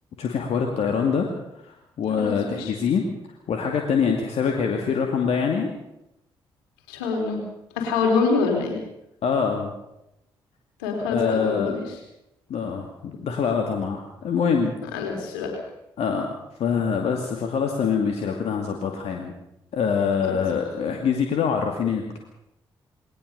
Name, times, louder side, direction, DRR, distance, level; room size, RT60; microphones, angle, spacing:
voice 1, 0.2-1.3 1.6-3.0 3.5-5.8 9.2-9.7 11.1-11.8 12.5-14.7 16.0-16.3 16.6-19.3 19.7-22.2, left 6 dB, 65° left, 2 dB, 2.5 m, -24 dB
voice 2, 2.2-2.7 6.9-7.4 7.8-8.8 10.8-12.0 14.9-15.6, left 4 dB, 85° left, 2 dB, 4.3 m, -25 dB
21.0 x 18.5 x 6.9 m, 0.86 s
hypercardioid pair, 40°, 11 cm